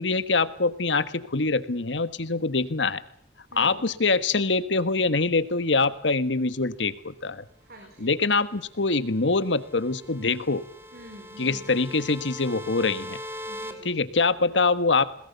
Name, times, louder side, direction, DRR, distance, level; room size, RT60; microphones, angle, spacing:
voice 1, 0.0-3.0 3.5-7.4 8.0-10.6 11.4-13.2 13.8-15.0, left 3 dB, 85° left, 13 dB, 1.5 m, -24 dB
voice 2, 3.5-3.8 7.6-8.1 10.9-11.7 13.5-14.0 14.4-14.5, right 1 dB, 55° right, 3 dB, 4.5 m, -47 dB
sound 1, 8.8-13.7, left 1 dB, 15° right, 2.7 m, -41 dB
21.5 x 20.5 x 8.2 m, 0.63 s
head